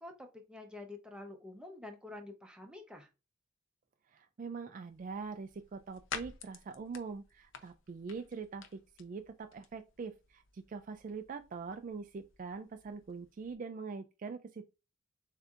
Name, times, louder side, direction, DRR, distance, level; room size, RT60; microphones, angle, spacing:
voice 1, 0.0-3.1, left 2 dB, 5° right, 0.7 m, -48 dB
voice 2, 4.1-14.8, right 5 dB, 40° right, 0.3 m, -43 dB
sound 1, 4.9-13.5, left 6 dB, 70° left, 0.6 m, -51 dB
6.7 x 2.7 x 2.4 m
head